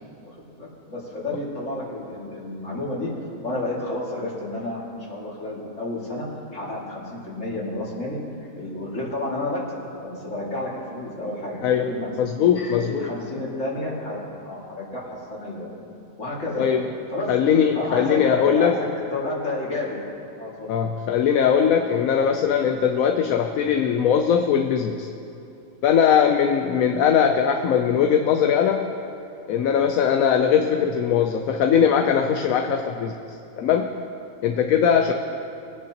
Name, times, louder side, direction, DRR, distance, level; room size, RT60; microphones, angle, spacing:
voice 1, 0.2-3.1 3.4-12.1 12.6-15.0 15.3-15.7 16.2-16.7 17.1-17.3 17.7-20.0 20.4-20.7, left 2 dB, 65° left, -5 dB, 2.7 m, -31 dB
voice 2, 12.2-13.1 16.6-16.9 17.3-18.8 20.7-25.1 25.8-28.9 29.5-33.1 33.6-33.9 34.4-35.1, left 8 dB, 85° left, 4 dB, 1.1 m, -20 dB
21.0 x 9.4 x 2.9 m, 2.7 s
omnidirectional pair, 1.4 m